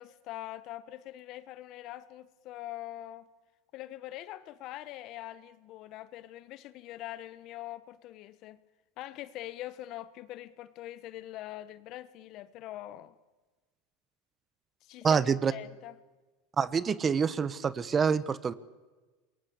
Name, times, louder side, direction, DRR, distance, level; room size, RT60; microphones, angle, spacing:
voice 1, 0.0-3.3 3.7-8.6 9.0-13.1 14.8-15.2 15.5-16.0, left 14 dB, 50° left, 1.3 m, -43 dB
voice 2, 15.0-15.5 16.6-18.5, right 6 dB, 25° right, 1.1 m, -26 dB
27.5 x 22.5 x 8.3 m
supercardioid pair, 115°, 0 cm